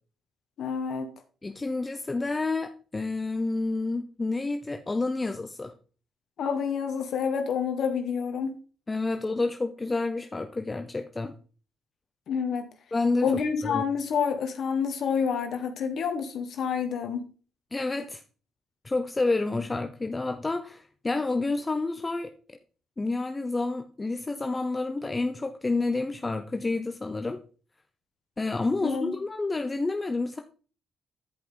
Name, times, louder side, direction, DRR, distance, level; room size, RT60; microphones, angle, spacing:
voice 1, 0.6-1.1 6.4-8.6 12.3-12.7 13.2-17.2 28.8-29.1, left 6 dB, 65° left, 6 dB, 1.4 m, -28 dB
voice 2, 1.4-5.7 8.9-11.4 12.9-13.3 13.6-13.8 17.7-18.2 18.8-22.3 23.0-27.4 28.4-30.4, left 3 dB, 20° left, 6 dB, 0.7 m, -29 dB
10.5 x 5.4 x 3.9 m, 0.38 s
cardioid pair, 90°, 0 cm